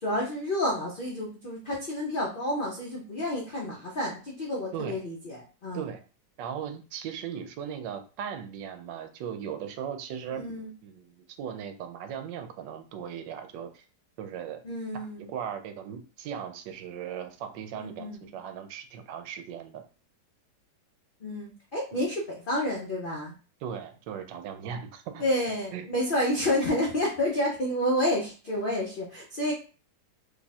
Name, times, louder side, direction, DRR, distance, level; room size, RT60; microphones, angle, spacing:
voice 1, 0.0-5.8 10.4-10.7 14.6-15.3 17.8-18.2 21.2-23.3 25.2-29.5, left 1 dB, 70° left, -3 dB, 0.4 m, -29 dB
voice 2, 6.4-10.4 10.8-13.8 14.2-14.6 14.9-19.8 21.9-22.1 23.6-25.2 25.7-25.9, right 8 dB, 85° right, 8 dB, 1.2 m, -38 dB
3.0 x 2.3 x 4.1 m, 0.36 s
omnidirectional pair, 1.9 m